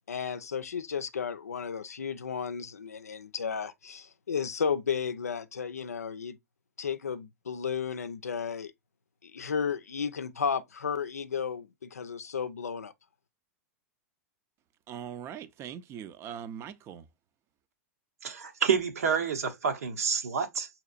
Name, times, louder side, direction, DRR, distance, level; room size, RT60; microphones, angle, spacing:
voice 1, 0.1-6.4 6.8-8.7 9.2-12.9, left 6 dB, 85° left, 0.5 m, -33 dB
voice 2, 14.9-17.1, right 9 dB, 35° right, 0.5 m, -41 dB
voice 3, 18.2-20.7, right 6 dB, 75° right, 0.9 m, -28 dB
6.3 x 3.0 x 2.4 m
hypercardioid pair, 100°, 8 cm